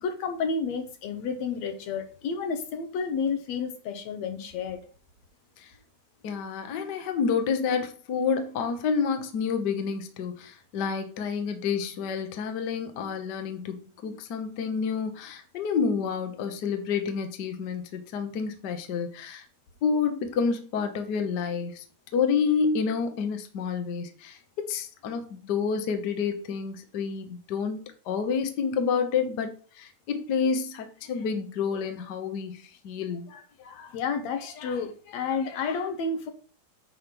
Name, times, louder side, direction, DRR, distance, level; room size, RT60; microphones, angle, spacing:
voice 1, 0.0-4.8 33.3-36.3, left 5 dB, 70° left, 2.1 m, -31 dB
voice 2, 6.2-19.5 19.8-21.8 22.1-24.4 24.7-27.8 28.0-29.5 29.7-33.3, left 6 dB, 85° left, 0.9 m, -29 dB
9.4 x 3.5 x 6.0 m
omnidirectional pair, 3.6 m